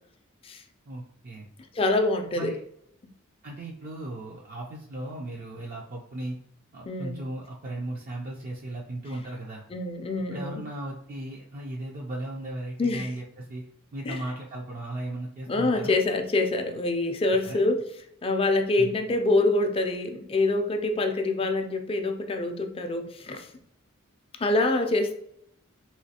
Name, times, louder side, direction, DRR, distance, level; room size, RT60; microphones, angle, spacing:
voice 1, 0.9-1.5 2.3-2.6 3.4-6.4 6.7-9.6 10.3-13.2 13.5-13.7 13.9-15.9 17.4-17.6 18.8-19.0, right 1 dB, 45° right, -2 dB, 0.4 m, -36 dB
voice 2, 1.7-2.5 6.9-7.2 9.7-10.6 12.8-13.1 14.1-14.2 15.5-17.8 18.2-23.5 24.4-25.1, left 2 dB, 25° left, 5 dB, 0.4 m, -25 dB
3.0 x 3.0 x 2.8 m, 0.72 s
head